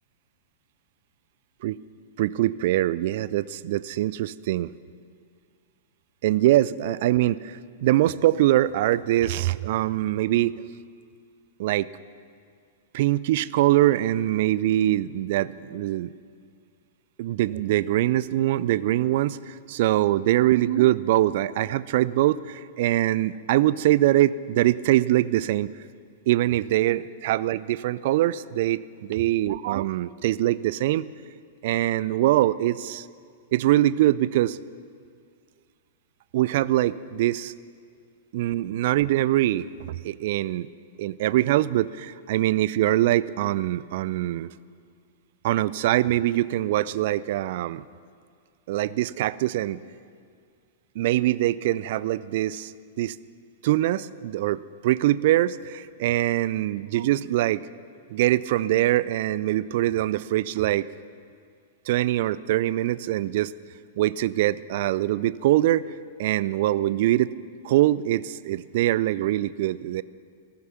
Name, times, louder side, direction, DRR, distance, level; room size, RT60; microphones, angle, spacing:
voice 1, 2.2-4.7 6.2-10.7 11.6-11.9 12.9-16.1 17.2-25.7 26.3-31.1 31.6-33.1 33.5-34.6 36.3-37.5 38.3-40.7 41.0-44.5 45.4-47.8 48.7-49.8 51.0-53.2 53.6-57.6 58.1-60.9 61.9-63.5 64.0-65.9 66.2-67.3 67.6-70.0, right 14 dB, 50° right, 19 dB, 0.4 m, -23 dB
15.0 x 14.0 x 5.9 m, 2.2 s
figure-of-eight pair, 100°, 0 cm